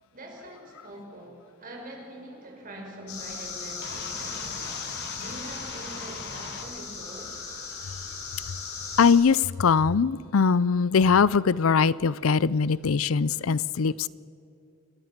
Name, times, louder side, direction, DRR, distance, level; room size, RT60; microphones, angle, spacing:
voice 1, 0.1-7.4, right 1 dB, 40° right, 0 dB, 5.6 m, -44 dB
sound 1, 3.1-9.1, left 5 dB, 85° left, 5.9 m, -37 dB
sound 2, 3.8-6.7, left 4 dB, 50° left, 2.1 m, -40 dB
voice 2, 9.0-14.1, left 5 dB, 70° left, 20 dB, 0.5 m, -21 dB
27.5 x 20.5 x 5.9 m, 2.7 s
head